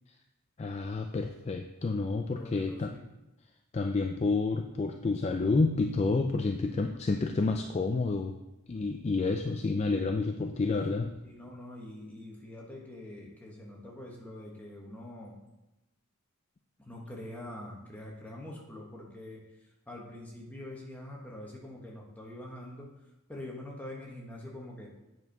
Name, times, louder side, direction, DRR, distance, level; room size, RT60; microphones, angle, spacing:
voice 1, 0.6-2.9 3.7-8.4 8.7-11.1, left 3 dB, 30° left, 5 dB, 0.3 m, -29 dB
voice 2, 2.4-3.1 10.7-15.4 16.8-24.9, left 1 dB, 5° left, -3 dB, 1.4 m, -45 dB
8.3 x 4.6 x 5.3 m, 0.98 s
head